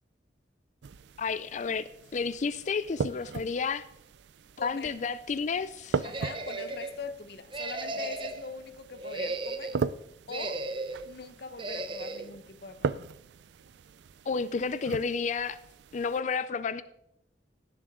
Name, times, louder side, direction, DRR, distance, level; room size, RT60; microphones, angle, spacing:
sound 1, 0.8-16.2, right 5 dB, 75° right, 0.4 m, -39 dB
voice 1, 1.2-3.9 4.6-6.1 14.3-15.6 15.9-16.8, left 5 dB, 45° left, 0.4 m, -31 dB
voice 2, 4.6-5.0 6.0-9.8 10.3-10.7 11.0-12.9, left 4 dB, 65° left, 0.9 m, -42 dB
sound 2, 6.0-6.9 7.5-8.5 8.9-9.8 10.3-11.0 11.6-12.3, right 2 dB, 30° right, 0.8 m, -35 dB
17.5 x 7.2 x 3.7 m
head